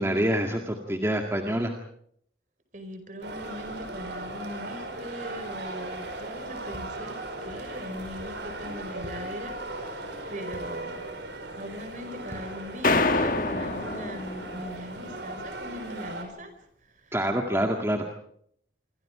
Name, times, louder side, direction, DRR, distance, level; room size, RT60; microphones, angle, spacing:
voice 1, 0.0-1.7 17.1-18.1, equal, 15° right, 3 dB, 2.0 m, -26 dB
voice 2, 2.7-11.0 11.6-16.5 16.8-17.2, equal, 45° right, 8 dB, 4.9 m, -40 dB
sound 1, 3.2-16.2, right 2 dB, 75° right, 5.2 m, -38 dB
sound 2, 6.7-6.9 7.5-7.6 8.1-8.3 9.0-9.2 10.5-10.7 12.3-12.5, equal, 15° left, 7.6 m, -43 dB
sound 3, 12.8-14.8, left 3 dB, 45° left, 1.5 m, -26 dB
27.0 x 25.5 x 5.0 m, 0.68 s
head